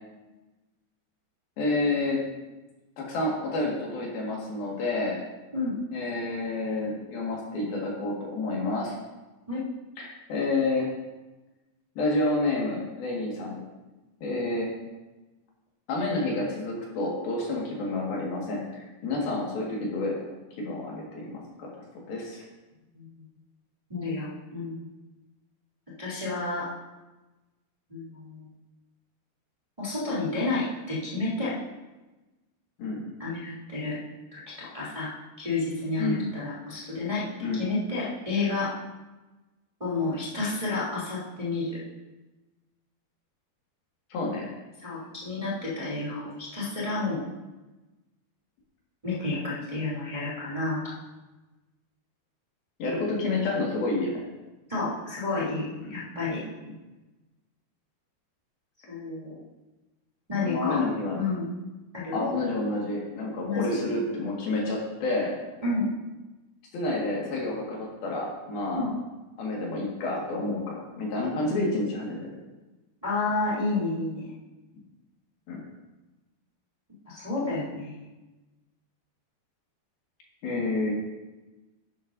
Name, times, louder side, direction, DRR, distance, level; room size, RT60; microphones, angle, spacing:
voice 1, 1.6-2.2 3.0-5.2 5.9-9.0 10.0-10.9 12.0-13.6 14.2-14.7 15.9-20.2 20.6-21.7 22.0-22.5 32.8-33.0 36.0-36.2 37.4-37.6 44.1-44.5 52.8-54.1 55.8-56.0 60.3-61.2 62.1-65.4 66.7-68.9 69.4-72.3 75.5-75.6 80.4-81.0, left 2 dB, 70° left, -3 dB, 3.7 m, -29 dB
voice 2, 23.9-24.8 26.0-26.7 27.9-28.5 29.8-31.5 33.2-34.0 34.3-35.1 35.4-37.2 37.5-38.7 39.8-41.8 44.8-47.2 49.0-50.9 54.7-56.4 58.9-59.4 60.3-60.8 61.2-61.5 61.9-62.2 63.4-63.8 65.6-65.8 68.7-68.9 73.0-74.3 77.1-78.1, left 3 dB, 10° right, -8 dB, 2.3 m, -30 dB
11.5 x 11.0 x 2.7 m, 1.1 s
omnidirectional pair, 4.5 m